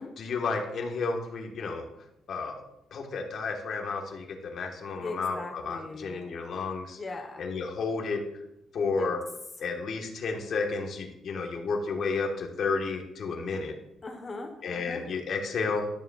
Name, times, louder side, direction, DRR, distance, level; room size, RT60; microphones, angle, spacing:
voice 1, 0.2-1.9 2.3-2.6 2.9-7.0 7.4-8.2 8.7-9.2 9.6-13.7 14.6-15.9, left 4 dB, 60° left, 3 dB, 1.4 m, -31 dB
voice 2, 5.0-6.2 6.9-7.5 8.9-9.1 9.6-9.7 14.0-15.1, left 3 dB, 35° left, 4 dB, 1.1 m, -40 dB
12.0 x 6.5 x 2.4 m, 0.84 s
cardioid pair, 90°, 0 cm